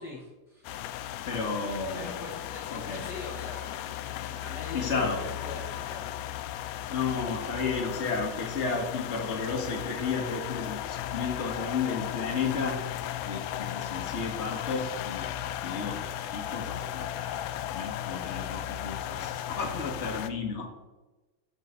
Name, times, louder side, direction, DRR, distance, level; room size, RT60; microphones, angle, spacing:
voice 1, 0.0-0.7 1.9-3.9 4.1-6.7, left 3 dB, 50° left, -1 dB, 1.3 m, -43 dB
sound 1, 0.6-20.3, left 11 dB, 85° left, 2.2 m, -36 dB
voice 2, 1.2-2.2 2.7-3.0 4.7-5.2 6.9-12.8 13.2-20.7, left 4 dB, 25° left, 1 dB, 1.6 m, -33 dB
13.0 x 6.9 x 4.6 m, 1.1 s
omnidirectional pair, 3.6 m